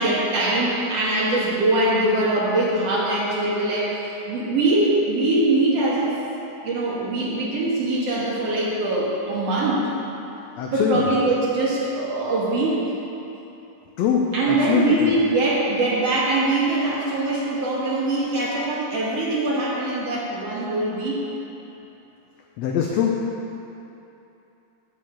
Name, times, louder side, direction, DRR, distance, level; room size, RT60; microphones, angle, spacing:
voice 1, 0.0-6.2 6.6-9.8 10.7-12.8 14.3-21.2, right 2 dB, 55° right, -5 dB, 2.2 m, -22 dB
voice 2, 10.6-11.0 14.0-14.9 22.6-23.1, left 7 dB, 85° left, 0 dB, 1.5 m, -22 dB
8.7 x 5.7 x 7.8 m, 2.9 s
omnidirectional pair, 3.8 m